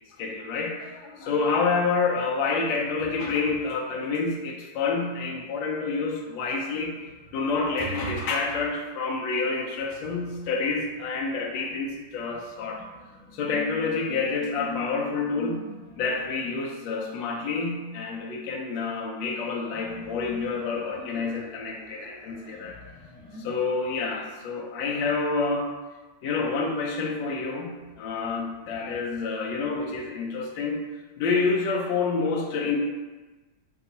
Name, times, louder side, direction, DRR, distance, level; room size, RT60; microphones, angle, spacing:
voice 1, 0.2-6.9 7.3-12.8 13.3-15.7 16.0-22.8 23.4-25.7 26.2-30.8 31.2-32.8, left 4 dB, 80° left, 0 dB, 1.3 m, -28 dB
sound 1, 6.8-8.7 9.8-16.6 19.7-23.5, left 3 dB, 45° left, 1.6 m, -45 dB
3.4 x 2.3 x 3.9 m, 1.2 s
omnidirectional pair, 2.1 m